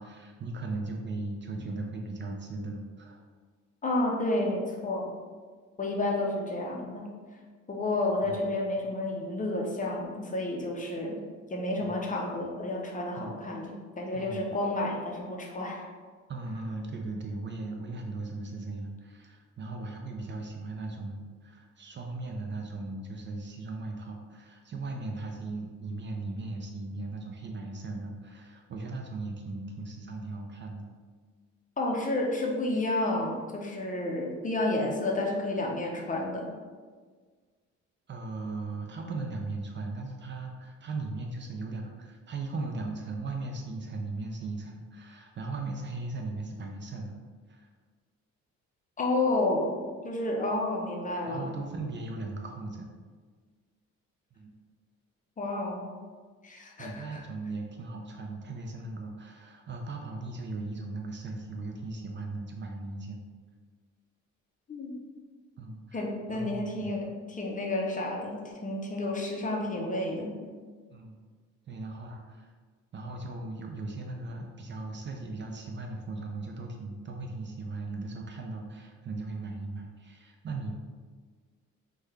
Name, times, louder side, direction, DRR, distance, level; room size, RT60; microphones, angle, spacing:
voice 1, 0.0-3.2 8.2-8.4 11.8-12.0 13.2-13.3 14.1-14.5 16.3-30.9 38.1-47.2 47.5-47.7 51.2-52.9 54.3-54.5 56.8-63.2 65.6-66.0 66.3-66.9 70.9-71.2 71.7-72.5 72.9-80.7, right 3 dB, 40° right, 2 dB, 0.4 m, -38 dB
voice 2, 3.8-5.1 5.8-7.1 7.7-11.2 11.5-15.8 31.8-36.5 49.0-49.7 50.0-51.5 55.4-55.8 56.4-57.2 64.7-65.0 65.9-67.0 67.3-70.3, left 2 dB, 25° left, -1 dB, 0.6 m, -30 dB
3.4 x 2.2 x 3.2 m, 1.5 s
cardioid pair, 90°, 30 cm